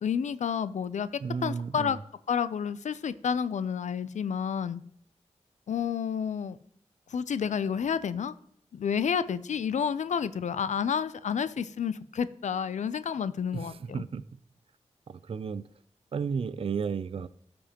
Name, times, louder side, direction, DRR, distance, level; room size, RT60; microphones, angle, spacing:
voice 1, 0.0-1.1 1.4-2.0 2.3-4.8 5.7-6.6 7.1-8.3 8.7-14.0, left 7 dB, 80° left, 15 dB, 0.4 m, -30 dB
voice 2, 1.2-2.0 13.5-14.2 15.1-15.7 16.1-17.3, right 6 dB, 50° right, 15 dB, 0.4 m, -33 dB
14.0 x 5.1 x 2.9 m, 0.66 s
wide cardioid pair, 75°, 12 cm